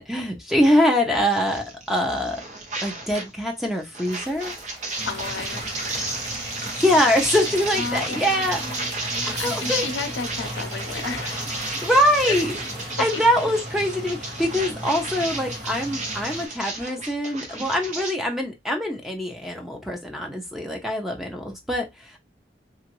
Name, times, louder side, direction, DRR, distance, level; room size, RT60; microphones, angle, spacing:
voice 1, 0.0-2.4 2.8-4.5 6.7-8.6 9.3-9.8 11.7-12.5 13.0-22.2, equal, ahead, 0.6 m, -23 dB
sound 1, 1.3-3.3 3.6-18.1, right 2 dB, 40° right, 0.8 m, -33 dB
sound 2, 4.0-12.9, right 1 dB, 25° right, 1.2 m, -41 dB
voice 2, 5.0-6.3 7.5-11.9 12.3-12.4, left 4 dB, 80° left, 0.6 m, -34 dB
sound 3, 5.0-16.5, equal, 70° right, 1.8 m, -37 dB
3.0 x 2.5 x 2.9 m
head